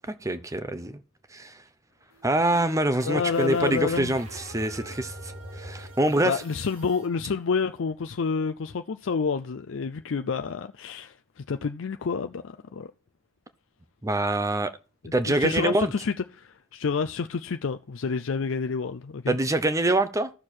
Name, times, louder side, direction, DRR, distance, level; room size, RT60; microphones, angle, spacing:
voice 1, 0.2-0.9 1.3-1.5 2.2-6.4 14.0-14.7 15.1-15.9 19.3-20.3, right 1 dB, 15° right, 0.7 m, -25 dB
sound 1, 2.1-7.1, right 1 dB, 60° right, 2.2 m, -43 dB
voice 2, 3.0-4.1 6.2-12.9 15.3-19.4, left 5 dB, 60° left, 0.5 m, -29 dB
12.5 x 6.6 x 4.4 m
head